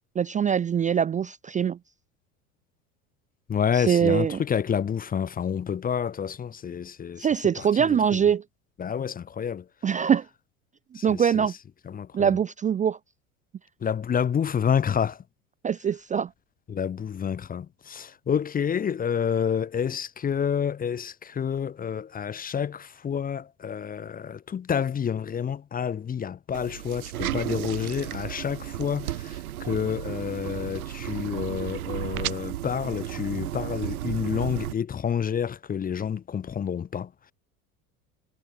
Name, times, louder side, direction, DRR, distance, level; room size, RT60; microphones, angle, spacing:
voice 1, 0.2-1.8 3.7-4.4 7.2-8.4 9.8-10.2 11.0-11.5 12.1-13.0 15.6-16.3, right 8 dB, 20° right, 0.5 m, -23 dB
voice 2, 3.5-8.2 8.8-9.7 10.9-11.5 11.9-12.4 13.8-15.2 16.7-37.3, left 8 dB, 20° left, 0.7 m, -29 dB
sound 1, 26.5-34.7, right 13 dB, 75° right, 2.1 m, -33 dB
hypercardioid pair, 80°, 43 cm